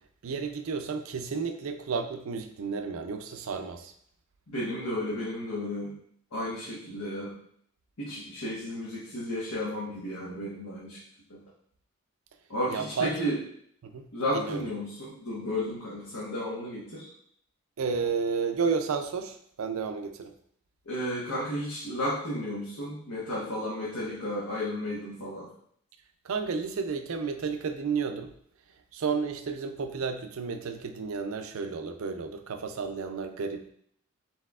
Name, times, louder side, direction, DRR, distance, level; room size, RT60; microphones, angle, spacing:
voice 1, 0.2-3.9 12.7-13.1 13.8-14.1 14.3-14.6 17.8-20.3 26.2-28.3 28.9-33.7, right 5 dB, 70° right, 7 dB, 0.4 m, -32 dB
voice 2, 4.5-5.9 6.3-7.3 8.0-11.0 11.3-11.4 12.5-13.4 14.1-17.0 20.9-25.5, left 1 dB, 85° left, -8 dB, 1.2 m, -33 dB
4.4 x 4.1 x 2.4 m, 0.65 s
head